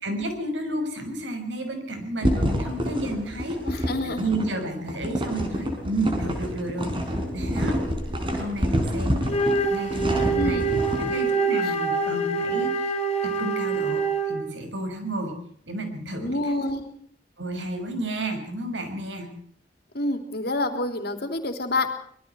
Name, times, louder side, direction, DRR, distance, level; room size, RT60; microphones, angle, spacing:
voice 1, 0.0-7.0 7.3-7.8 8.3-9.3 9.7-10.7 11.1-13.0 13.2-15.4 15.7-16.5 17.4-19.4, right 1 dB, 80° right, 6 dB, 6.3 m, -31 dB
sound 1, 2.2-11.2, equal, 30° right, 4.8 m, -27 dB
voice 2, 3.7-4.2 10.3-10.6 16.2-16.8 19.9-21.9, left 2 dB, 60° left, 6 dB, 3.6 m, -27 dB
Wind instrument woodwind instrument, 9.2-14.5, right 3 dB, 35° left, 4.5 m, -25 dB
25.5 x 22.0 x 4.7 m, 0.62 s
head